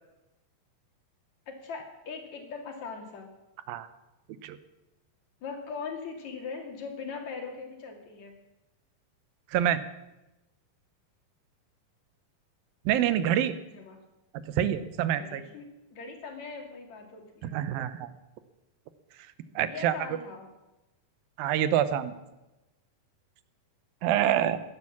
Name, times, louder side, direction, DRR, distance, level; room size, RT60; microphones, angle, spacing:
voice 1, 1.5-3.3 5.4-8.3 13.1-13.3 13.7-14.0 15.1-17.6 19.4-20.5, left 5 dB, 50° left, 3 dB, 3.5 m, -41 dB
voice 2, 12.9-13.5 14.5-15.4 17.4-18.1 19.6-19.9 21.4-22.1 24.0-24.6, right 11 dB, 80° right, 13 dB, 2.6 m, -26 dB
16.5 x 11.0 x 7.3 m, 0.99 s
omnidirectional pair, 4.3 m